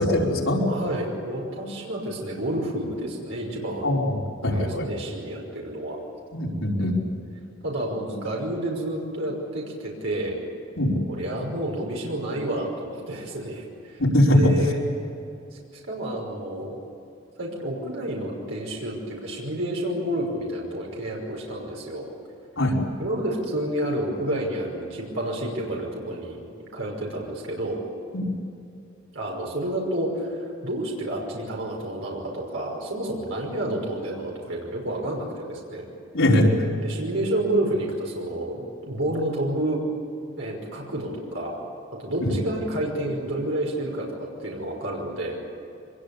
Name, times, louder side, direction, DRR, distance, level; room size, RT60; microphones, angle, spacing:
voice 1, 0.0-0.6 3.8-4.1 4.4-4.9 6.3-6.9 10.8-10.9 14.0-14.4 22.6-22.8 36.1-36.7 42.2-42.3, left 1 dB, 80° left, -2 dB, 5.1 m, -21 dB
voice 2, 0.7-4.0 4.4-6.0 6.8-6.9 7.6-10.4 11.1-14.8 15.5-16.8 17.4-22.1 23.0-26.4 26.7-27.8 29.1-35.9 36.7-39.8 40.4-41.6 42.0-45.4, right 1 dB, 75° right, -2 dB, 5.6 m, -30 dB
25.0 x 21.5 x 8.6 m, 2.7 s
head